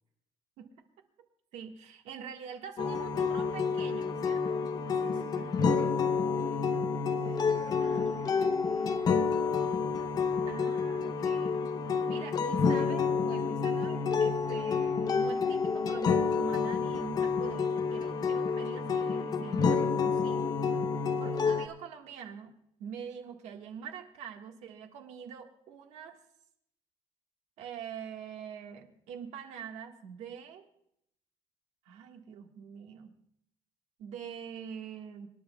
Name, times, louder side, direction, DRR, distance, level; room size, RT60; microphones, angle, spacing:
voice 1, 1.5-4.6 7.8-8.3 10.5-11.6 12.1-20.4 21.2-22.5 22.8-26.2 27.6-30.6 31.8-33.1 34.0-35.3, right 7 dB, 80° right, 3 dB, 1.6 m, -44 dB
sound 1, 2.8-21.7, left 5 dB, 35° left, 0.7 m, -29 dB
voice 2, 4.9-6.9 7.1-9.4, right 4 dB, 45° right, 0 dB, 5.3 m, -52 dB
26.5 x 10.5 x 2.3 m, 0.72 s
cardioid pair, 170°, 11 cm